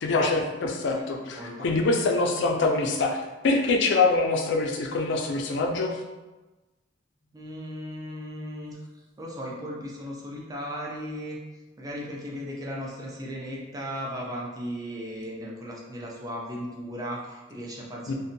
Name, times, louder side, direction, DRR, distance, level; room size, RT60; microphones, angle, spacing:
voice 1, 0.0-6.0 18.1-18.2, left 3 dB, 60° left, 2 dB, 0.4 m, -24 dB
voice 2, 0.9-1.7 7.3-11.4 11.8-18.1, equal, 20° right, -3 dB, 0.4 m, -36 dB
2.6 x 2.1 x 2.5 m, 1.1 s
head